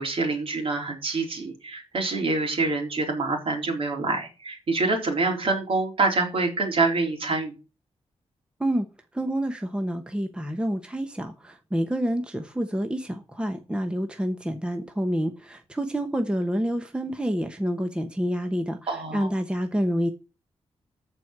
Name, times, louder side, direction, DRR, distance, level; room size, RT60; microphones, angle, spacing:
voice 1, 0.0-7.5 18.9-19.3, right 3 dB, 55° right, 3.8 m, -26 dB
voice 2, 9.1-18.8 19.1-20.1, equal, 10° right, 1.1 m, -28 dB
14.0 x 4.7 x 6.0 m
wide cardioid pair, 115°, 11 cm